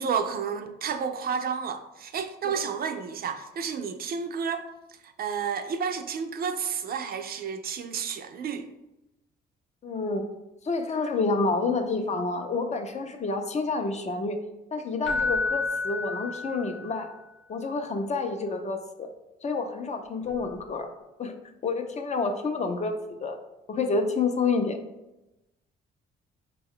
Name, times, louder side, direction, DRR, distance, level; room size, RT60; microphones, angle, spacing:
voice 1, 0.0-4.6 5.0-8.7, right 6 dB, 50° right, 7 dB, 0.4 m, -31 dB
voice 2, 9.8-10.2 10.6-14.4 14.7-17.1 17.5-19.1 19.4-20.9 21.2-21.3 21.6-23.4 23.7-24.8, left 3 dB, 35° left, 6 dB, 0.5 m, -28 dB
Keyboard (musical), 15.0-17.0 20.3-20.4, left 3 dB, 70° left, 0.8 m, -30 dB
4.5 x 2.2 x 3.6 m, 0.96 s
cardioid pair, 90°, 20 cm